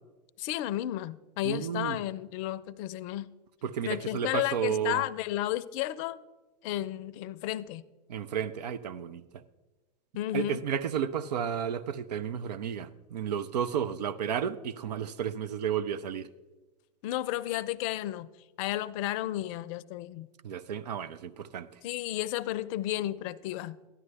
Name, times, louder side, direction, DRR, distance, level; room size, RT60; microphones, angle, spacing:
voice 1, 0.4-3.3 3.8-6.2 6.6-7.8 10.1-10.6 17.0-18.3 18.6-20.3 21.8-23.8, left 14 dB, 55° left, 0.5 m, -32 dB
voice 2, 1.4-2.0 3.6-5.0 8.1-9.4 10.3-16.3 20.4-21.7, right 8 dB, 75° right, 0.5 m, -32 dB
12.5 x 11.0 x 3.3 m
hypercardioid pair, 90°, 21 cm